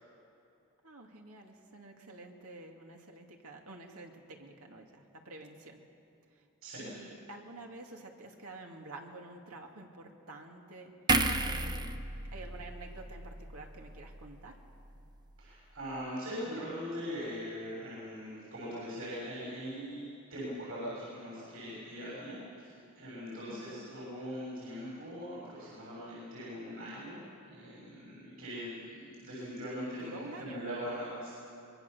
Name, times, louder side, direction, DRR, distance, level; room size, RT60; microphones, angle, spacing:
voice 1, 0.8-5.8 6.3-6.5 6.8-11.9 12.3-14.6 23.5-23.9 30.0-30.6, right 2 dB, 85° right, 2 dB, 2.4 m, -49 dB
voice 2, 6.6-7.0 15.4-27.2 27.5-31.3, equal, 70° right, -7 dB, 6.9 m, -41 dB
sound 1, 11.1-14.5 14.8-15.0, right 2 dB, 20° right, 0.7 m, -33 dB
24.5 x 22.0 x 6.9 m, 2.7 s
head